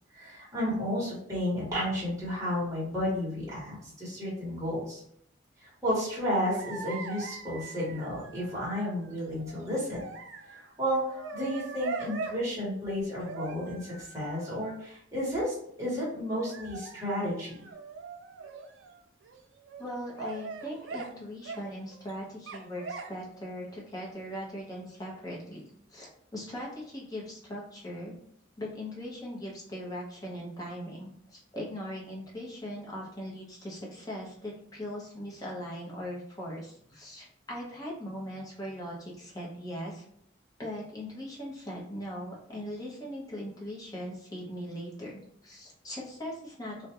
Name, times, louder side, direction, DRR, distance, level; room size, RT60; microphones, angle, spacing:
voice 1, 0.1-5.0 5.6-10.0 10.5-17.7, equal, 15° right, -7 dB, 1.1 m, -32 dB
sound 1, 6.5-12.4 13.2-14.8 16.4-19.0 19.2-19.9 20.1-21.1 21.4-22.1 22.5-23.3 23.7-24.1, right 4 dB, 75° right, 0.3 m, -42 dB
voice 2, 19.8-25.6 25.9-28.2 28.6-40.0 40.6-45.1 45.4-46.9, equal, 20° left, -4 dB, 0.7 m, -40 dB
2.3 x 2.2 x 2.8 m, 0.67 s
head